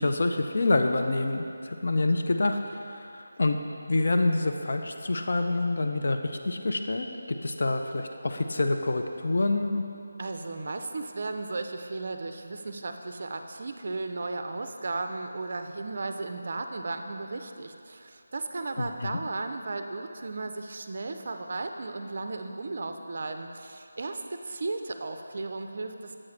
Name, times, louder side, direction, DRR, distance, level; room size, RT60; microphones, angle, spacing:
voice 1, 0.0-3.6 3.9-9.8 18.8-19.1, left 2 dB, 60° left, 5 dB, 0.4 m, -27 dB
voice 2, 10.2-26.2, right 3 dB, 50° right, 6 dB, 0.4 m, -35 dB
7.4 x 4.7 x 3.2 m, 2.5 s
figure-of-eight pair, 160°, 0 cm